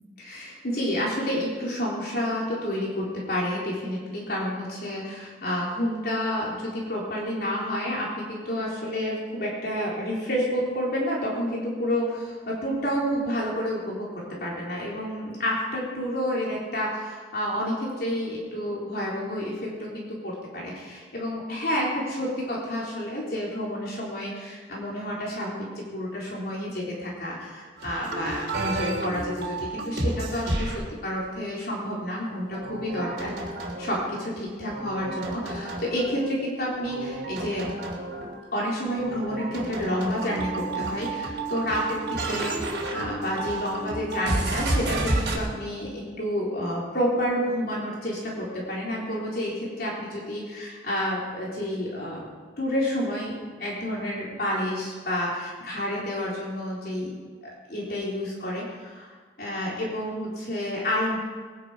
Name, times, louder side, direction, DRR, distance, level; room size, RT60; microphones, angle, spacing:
voice 1, 0.2-33.3 33.8-37.7 38.5-52.3 52.6-61.2, equal, 55° left, -4 dB, 4.1 m, -29 dB
sound 1, 27.8-30.8 32.5-34.2 34.6-36.3 36.7-38.4 38.9-45.4, right 2 dB, 65° right, 3.1 m, -31 dB
22.0 x 10.5 x 5.2 m, 1.5 s
head